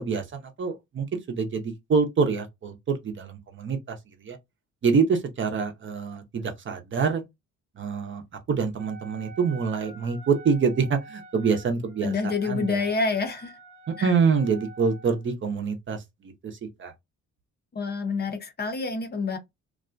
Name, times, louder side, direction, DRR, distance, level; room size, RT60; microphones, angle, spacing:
voice 1, 0.0-4.4 4.8-7.2 7.8-12.8 13.9-16.9, right 5 dB, 40° right, 0.6 m, -26 dB
Wind instrument woodwind instrument, 8.8-15.2, right 3 dB, 85° right, 0.8 m, -47 dB
voice 2, 12.0-13.5 14.0-14.1 17.7-19.4, left 4 dB, 35° left, 0.5 m, -28 dB
2.4 x 2.1 x 2.4 m
cardioid pair, 90°, 30 cm